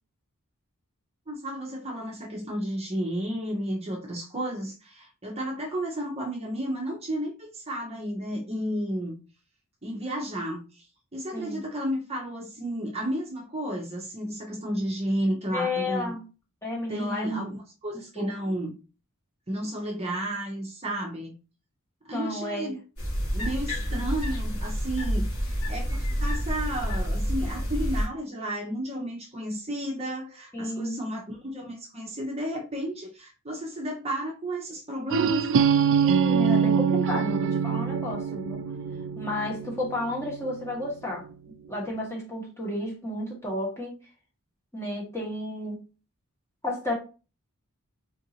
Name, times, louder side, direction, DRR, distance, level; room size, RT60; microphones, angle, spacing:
voice 1, 1.3-9.2 9.8-10.9 11.1-16.1 16.9-17.6 17.8-18.7 19.5-21.4 22.1-22.8 23.3-35.7, right 1 dB, 30° right, 0.7 m, -32 dB
voice 2, 15.5-16.2 16.6-17.4 18.1-18.3 22.1-22.7 30.5-31.0 36.0-38.6 39.2-41.2 41.7-43.9 44.7-45.8 46.6-46.9, left 1 dB, 10° left, 1.1 m, -32 dB
sound 1, 23.0-28.1, equal, 75° left, 1.8 m, -28 dB
sound 2, 35.1-40.9, right 6 dB, 55° right, 0.3 m, -25 dB
3.8 x 2.6 x 2.8 m
head